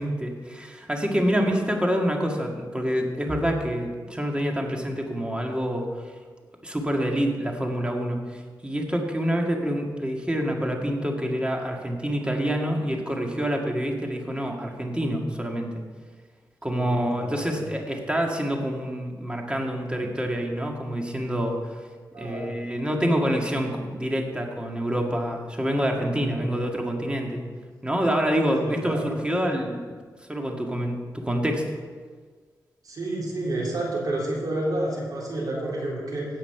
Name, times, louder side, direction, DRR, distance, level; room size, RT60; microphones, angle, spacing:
voice 1, 0.0-5.9 6.6-15.7 16.6-21.8 22.2-27.4 27.8-30.0 30.3-31.6, equal, 15° right, 1 dB, 1.9 m, -27 dB
voice 2, 16.8-17.7 22.1-22.6 26.3-26.6 28.6-29.1 32.8-36.3, right 1 dB, 60° right, -4 dB, 3.8 m, -30 dB
17.0 x 5.8 x 5.8 m, 1.5 s
cardioid pair, 90°, 7 cm